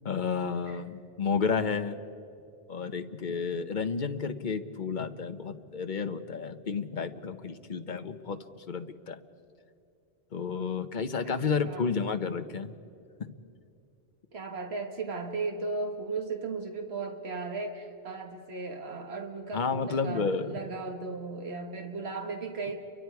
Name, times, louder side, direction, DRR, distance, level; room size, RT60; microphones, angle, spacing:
voice 1, 0.0-2.0 2.7-8.4 8.7-9.2 10.3-12.7 13.2-13.3 19.5-20.6, left 5 dB, 45° left, 9 dB, 1.0 m, -31 dB
voice 2, 14.3-22.8, right 3 dB, 65° right, 3 dB, 1.9 m, -36 dB
30.0 x 23.5 x 4.7 m, 2.6 s
omnidirectional pair, 1.2 m